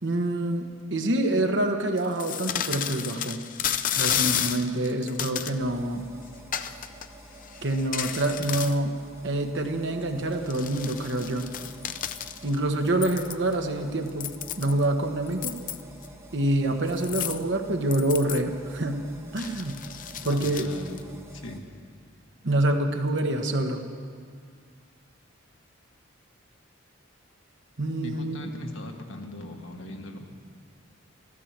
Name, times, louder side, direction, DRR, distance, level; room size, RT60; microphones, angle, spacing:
voice 1, 0.0-3.4 4.0-6.0 7.6-9.0 9.2-11.5 12.4-14.3 14.6-15.5 16.3-19.1 19.3-19.8 20.2-20.7 22.4-23.8 27.8-28.5, right 1 dB, 60° right, 5 dB, 1.3 m, -26 dB
sound 1, 2.0-5.5 6.5-7.1 7.4-8.8 10.2-12.6 13.0-13.5 14.1-14.8 15.3-16.1 16.9-17.4 17.9-18.4 19.3-21.0, left 10 dB, 40° left, 0.5 m, -32 dB
sound 2, 5.6-21.6, right 1 dB, 15° right, 1.0 m, -49 dB
voice 2, 20.2-21.6 28.0-30.4, left 1 dB, 80° left, 3 dB, 1.6 m, -40 dB
14.0 x 13.5 x 7.4 m, 2.1 s
head